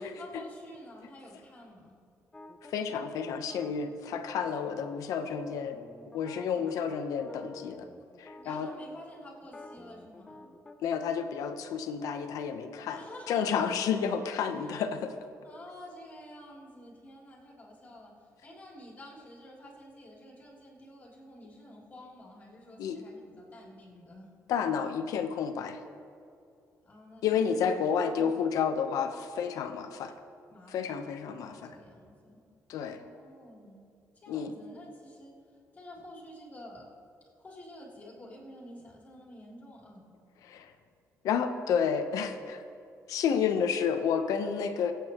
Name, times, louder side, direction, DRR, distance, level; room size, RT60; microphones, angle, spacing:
voice 1, 0.0-1.9 6.6-7.2 8.4-10.5 12.9-13.4 14.5-14.9 15.4-18.1 18.4-24.3 26.8-28.5 30.5-32.4 33.0-33.8 34.1-36.8 37.4-40.0, left 1 dB, 25° left, -4 dB, 3.1 m, -50 dB
sound 1, 2.3-9.0 9.4-11.3, left 2 dB, 10° left, 0.6 m, -49 dB
voice 2, 2.6-5.8 6.1-7.9 8.2-8.7 10.8-15.1 22.8-23.0 24.5-25.8 27.2-30.1 30.7-31.8 32.7-33.0 34.3-34.5 40.4-40.7 41.2-42.6 43.1-44.9, left 7 dB, 80° left, 7 dB, 0.9 m, -30 dB
25.0 x 8.5 x 3.0 m, 2.4 s
cardioid pair, 165°, 6 cm